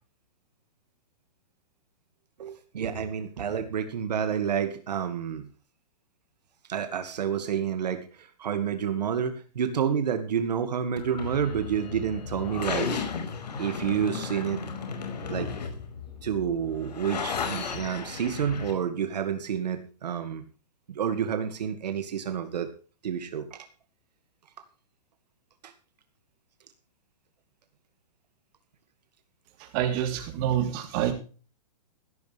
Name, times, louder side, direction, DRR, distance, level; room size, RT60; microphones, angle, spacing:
voice 1, 2.4-5.4 6.7-12.9 13.6-14.6 15.3-15.5 16.2-20.4 20.9-22.7 23.0-23.7 25.6-25.7, right 8 dB, 80° right, 8 dB, 2.3 m, -29 dB
sound 1, 11.0-18.7, left 5 dB, 85° left, 5.4 m, -34 dB
voice 2, 29.7-31.1, right 10 dB, 35° right, 4 dB, 3.8 m, -27 dB
15.5 x 14.5 x 3.5 m, 0.38 s
hypercardioid pair, 160°, 21 cm